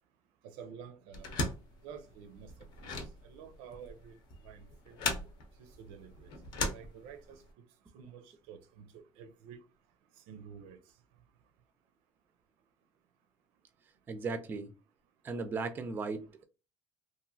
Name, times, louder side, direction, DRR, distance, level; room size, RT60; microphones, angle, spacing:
voice 1, 0.4-1.3 1.8-2.5 2.8-4.2 4.4-5.0 5.6-7.6 7.9-9.6 10.2-10.8, right 7 dB, 90° right, 0.5 m, -50 dB
sound 1, 1.1-7.5, left 3 dB, 55° left, 0.7 m, -38 dB
voice 2, 14.1-14.7 15.2-16.4, right 4 dB, 20° right, 0.4 m, -36 dB
2.9 x 2.5 x 2.6 m
cardioid pair, 165°, 9 cm